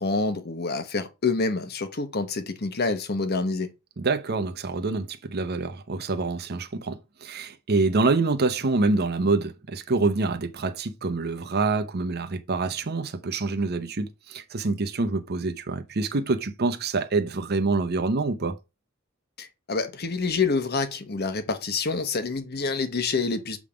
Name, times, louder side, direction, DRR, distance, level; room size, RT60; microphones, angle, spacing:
voice 1, 0.0-3.7 19.4-23.6, left 4 dB, 50° left, 1.0 m, -27 dB
voice 2, 4.0-18.6, right 3 dB, 50° right, 0.8 m, -26 dB
7.2 x 3.6 x 4.9 m
head